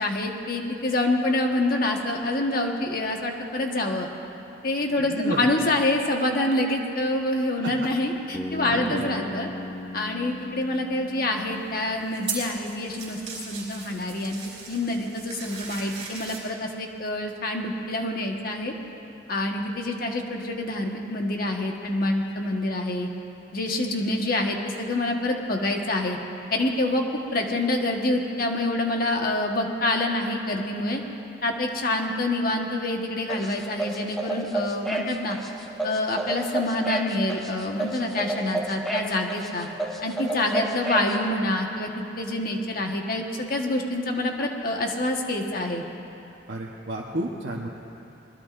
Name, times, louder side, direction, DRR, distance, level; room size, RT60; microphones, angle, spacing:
voice 1, 0.0-4.1 4.6-9.5 9.9-13.2 13.5-14.4 14.7-18.7 19.3-23.1 23.5-26.2 26.5-27.0 27.3-31.0 31.4-35.4 35.8-39.7 40.0-45.8, left 1 dB, 50° left, 1 dB, 1.4 m, -26 dB
voice 2, 5.0-5.5 7.6-7.9 8.6-9.2 46.5-47.7, right 1 dB, 70° right, -3 dB, 1.1 m, -32 dB
Bass guitar, 8.3-12.3, left 2 dB, 20° left, 0.8 m, -38 dB
sound 1, 11.4-16.4, right 5 dB, 30° right, 4.4 m, -38 dB
sound 2, 33.3-41.1, right 2 dB, ahead, 1.2 m, -30 dB
24.5 x 20.5 x 2.6 m, 2.8 s
head